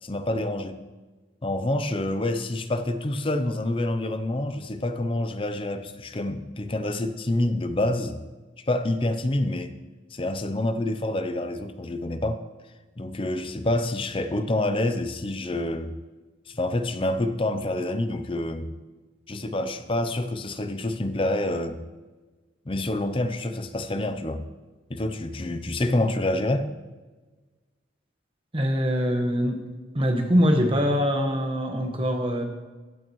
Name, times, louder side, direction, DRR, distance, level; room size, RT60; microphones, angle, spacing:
voice 1, 0.0-0.8 1.4-8.2 8.6-9.8 10.1-12.4 13.0-15.9 16.5-18.7 19.3-21.8 22.7-24.4 24.9-26.7, left 1 dB, 25° left, 9 dB, 0.5 m, -27 dB
voice 2, 28.5-29.6 29.9-32.4, equal, 25° right, 3 dB, 1.2 m, -23 dB
15.0 x 8.9 x 3.1 m, 1.3 s
head